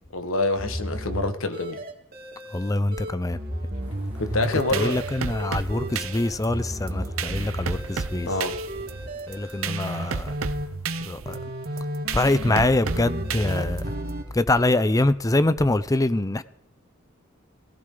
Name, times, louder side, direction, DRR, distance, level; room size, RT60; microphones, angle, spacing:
voice 1, 0.1-1.8 4.2-5.0 8.3-8.6, left 2 dB, 75° left, 1.5 m, -26 dB
sound 1, 0.6-14.2, equal, 50° right, 2.7 m, -33 dB
voice 2, 2.5-3.4 4.7-8.3 9.3-10.3 11.1-11.4 12.1-13.9 14.3-16.4, left 2 dB, 15° left, 0.6 m, -24 dB
sound 2, 3.8-10.5, equal, 10° right, 6.5 m, -46 dB
sound 3, 4.4-14.1, right 5 dB, 80° right, 0.8 m, -33 dB
18.0 x 17.0 x 3.9 m
head